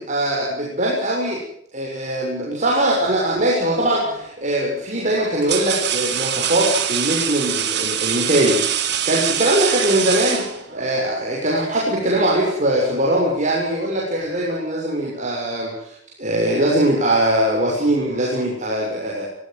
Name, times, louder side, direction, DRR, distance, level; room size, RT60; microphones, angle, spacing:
voice 1, 0.0-1.4 1.7-15.7 16.2-19.3, right 1 dB, 40° right, -3 dB, 6.8 m, -21 dB
sound 1, 3.8-4.2 5.0-10.9, right 9 dB, 60° right, 3.6 m, -24 dB
24.5 x 16.0 x 9.6 m, 0.76 s
head